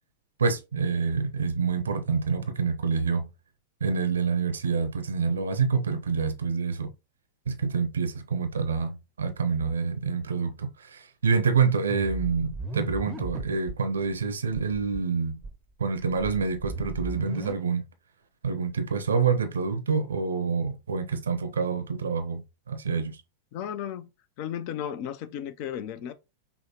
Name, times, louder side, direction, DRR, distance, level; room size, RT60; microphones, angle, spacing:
voice 1, 0.4-3.3 3.8-6.9 7.5-15.4 15.8-17.8 18.4-23.2, right 5 dB, 70° right, 0.5 m, -27 dB
sound 1, 11.9-13.8 14.1-14.2 14.5-15.0 15.4-17.5, right 3 dB, 15° right, 0.6 m, -36 dB
voice 2, 23.5-24.1 24.4-26.1, left 9 dB, 45° left, 0.4 m, -34 dB
5.4 x 2.1 x 2.9 m
figure-of-eight pair, 90°, 0 cm